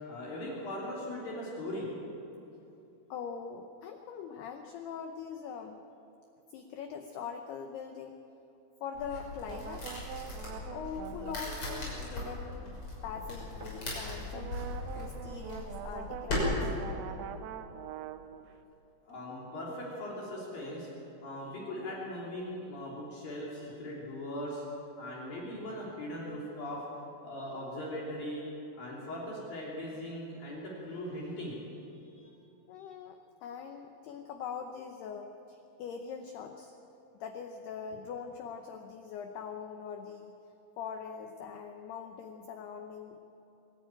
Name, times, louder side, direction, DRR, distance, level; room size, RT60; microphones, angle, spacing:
voice 1, 0.0-1.9 19.1-20.9 21.2-24.6 25.0-26.8 27.2-28.4 28.8-31.6 32.0-32.3, left 1 dB, 50° left, -5 dB, 4.3 m, -39 dB
voice 2, 3.1-5.8 6.5-8.2 8.8-9.9 10.7-12.7 13.0-14.6 15.0-16.7 32.7-36.7 37.2-40.4 40.8-43.2, left 6 dB, 80° left, 5 dB, 2.3 m, -42 dB
sound 1, 8.9-16.4, left 2 dB, 25° left, 6.6 m, -39 dB
sound 2, 9.5-12.9 14.3-18.5, right 9 dB, 85° right, 3.4 m, -44 dB
sound 3, 13.2-13.9 16.7-17.5 19.1-19.2, right 1 dB, 40° right, 2.1 m, -51 dB
23.5 x 13.5 x 9.0 m, 2.9 s
omnidirectional pair, 5.9 m